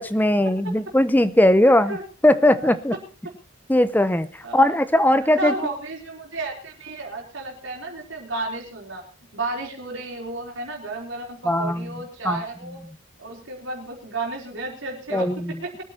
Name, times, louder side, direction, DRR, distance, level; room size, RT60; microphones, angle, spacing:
voice 1, 0.0-2.0 2.2-2.9 3.7-5.5 11.4-11.9 12.2-12.4 15.1-15.5, left 1 dB, 10° left, 14 dB, 0.7 m, -19 dB
voice 2, 1.7-2.0 2.3-2.7 4.4-4.7 5.4-9.0 9.3-12.8 13.2-15.7, right 2 dB, 60° right, -1 dB, 4.1 m, -32 dB
23.0 x 9.3 x 4.2 m, 0.36 s
head